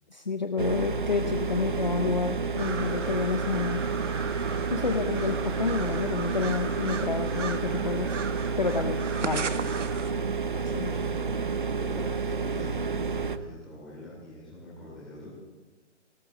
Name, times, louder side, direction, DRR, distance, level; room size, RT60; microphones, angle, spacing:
voice 1, 0.1-3.8 4.7-8.2 8.6-9.5 10.7-10.9, left 4 dB, 40° left, 7 dB, 0.6 m, -29 dB
sound 1, 0.6-13.4, right 5 dB, 45° right, 0.6 m, -30 dB
sound 2, 2.6-10.1, right 6 dB, 85° right, 1.2 m, -38 dB
voice 2, 9.1-9.5 10.6-11.3 11.7-15.3, left 1 dB, ahead, -10 dB, 3.2 m, -44 dB
18.0 x 13.0 x 3.9 m, 1.3 s
hypercardioid pair, 180°, 36 cm